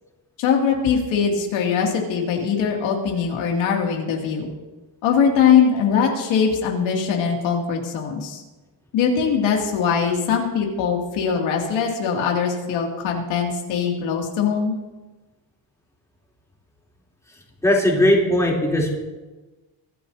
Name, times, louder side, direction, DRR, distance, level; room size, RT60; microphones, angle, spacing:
voice 1, 0.4-4.5 5.0-8.4 8.9-14.7, left 6 dB, 80° left, 0 dB, 2.6 m, -21 dB
voice 2, 17.6-18.9, left 1 dB, 5° left, -3 dB, 3.3 m, -18 dB
24.0 x 12.5 x 2.8 m, 1.2 s
cardioid pair, 140°, 46 cm